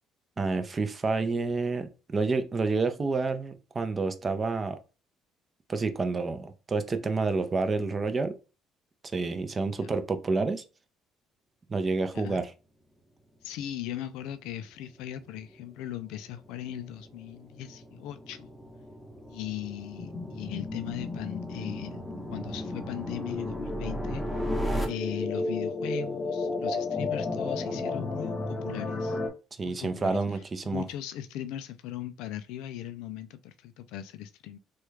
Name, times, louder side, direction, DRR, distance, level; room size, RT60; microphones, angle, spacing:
voice 1, 0.4-4.8 5.7-8.4 9.1-10.6 11.7-12.5 29.6-30.8, right 3 dB, 30° right, 0.5 m, -29 dB
voice 2, 13.4-18.5 19.3-22.0 22.3-24.2 24.8-29.2 29.6-30.2 30.6-34.6, left 11 dB, 85° left, 0.3 m, -38 dB
sound 1, 13.7-24.9, right 1 dB, 5° left, 0.9 m, -38 dB
sound 2, 20.0-29.3, left 3 dB, 40° left, 0.9 m, -33 dB
3.1 x 2.3 x 3.2 m
cardioid pair, 100°, 0 cm